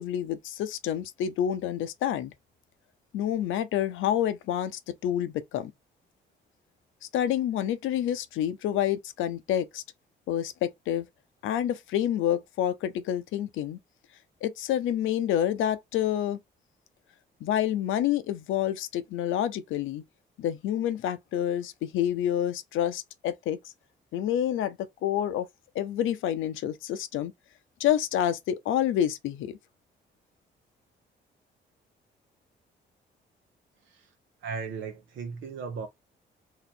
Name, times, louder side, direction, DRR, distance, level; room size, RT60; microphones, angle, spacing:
voice 1, 0.0-2.3 3.1-5.7 7.1-9.8 10.3-11.1 11.4-13.8 14.4-16.4 17.4-20.0 20.4-23.6 24.1-24.8 25.0-25.5 25.7-27.3 27.8-29.6, left 10 dB, 85° left, 0.6 m, -28 dB
voice 2, 34.4-35.9, right 5 dB, 75° right, 0.8 m, -36 dB
3.1 x 2.8 x 4.2 m
cardioid pair, 90°, 20 cm